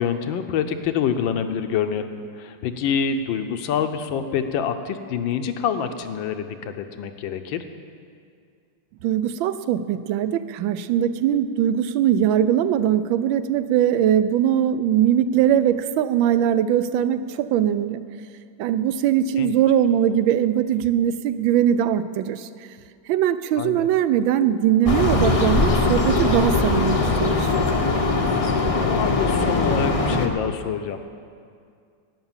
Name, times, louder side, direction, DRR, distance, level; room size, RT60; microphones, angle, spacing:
voice 1, 0.0-2.1 2.4-7.7 19.4-19.5 23.6-23.9 28.8-31.0, left 7 dB, 80° left, 8 dB, 1.5 m, -26 dB
voice 2, 9.0-18.0 18.6-22.5 23.1-27.5, right 10 dB, 85° right, 13 dB, 1.3 m, -21 dB
sound 1, 24.9-30.3, left 3 dB, 40° left, 0.5 m, -21 dB
12.0 x 9.6 x 7.3 m, 2.3 s
omnidirectional pair, 2.1 m